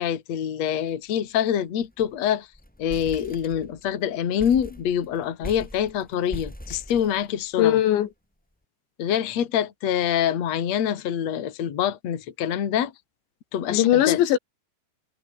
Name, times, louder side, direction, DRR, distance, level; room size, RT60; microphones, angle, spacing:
voice 1, 0.0-2.5 2.8-7.8 9.0-12.9 13.5-14.2, left 9 dB, 45° left, 2.9 m, -25 dB
sound 1, 0.9-1.1 1.4-1.5 1.8-2.2 2.5-3.9 4.4-7.7, equal, ahead, 3.5 m, -41 dB
voice 2, 7.6-8.1 13.7-14.4, left 12 dB, 75° left, 4.0 m, -19 dB
omnidirectional pair, 5.3 m